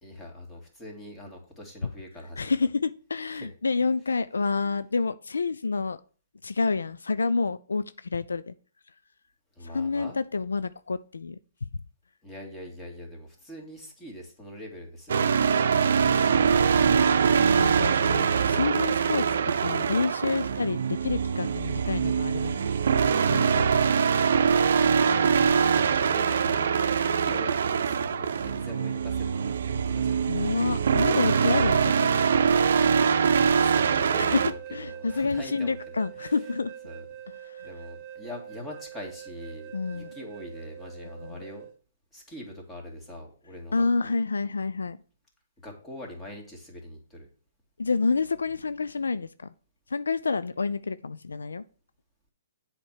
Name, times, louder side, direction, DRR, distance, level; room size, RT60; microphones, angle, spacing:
voice 1, 0.0-2.5 3.3-3.5 9.6-10.2 12.2-16.5 20.5-20.6 25.0-26.8 27.0-30.3 33.2-36.3 36.8-37.1 37.6-41.7 42.1-44.1 45.6-47.3, left 1 dB, 15° left, 0 dB, 2.4 m, -43 dB
voice 2, 2.4-6.0 6.4-8.5 9.7-11.4 17.6-22.6 23.3-23.7 30.3-32.2 34.2-36.7 37.4-37.7 39.7-40.1 41.2-41.4 43.7-45.0 47.8-49.5 49.9-51.6, left 4 dB, 85° left, 15 dB, 0.4 m, -28 dB
sound 1, 15.1-34.5, right 6 dB, 65° right, 0.6 m, -23 dB
sound 2, 34.1-41.7, right 10 dB, 35° right, 1.2 m, -44 dB
7.6 x 4.4 x 6.5 m, 0.40 s
hypercardioid pair, 140°, 0 cm